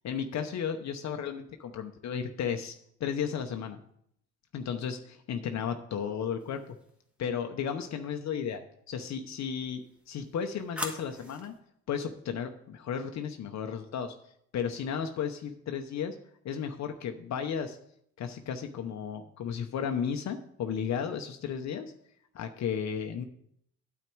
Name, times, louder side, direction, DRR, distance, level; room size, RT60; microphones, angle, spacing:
voice 1, 0.0-3.8 4.5-6.6 7.2-9.8 10.1-11.5 11.9-14.2 14.5-16.2 16.4-17.8 18.2-21.9 22.3-23.2, left 7 dB, 65° left, 5 dB, 0.8 m, -34 dB
sound 1, 6.4-7.1 9.5-11.6, left 1 dB, 5° right, 1.7 m, -42 dB
9.2 x 8.3 x 4.6 m, 0.71 s
cardioid pair, 90°, 30 cm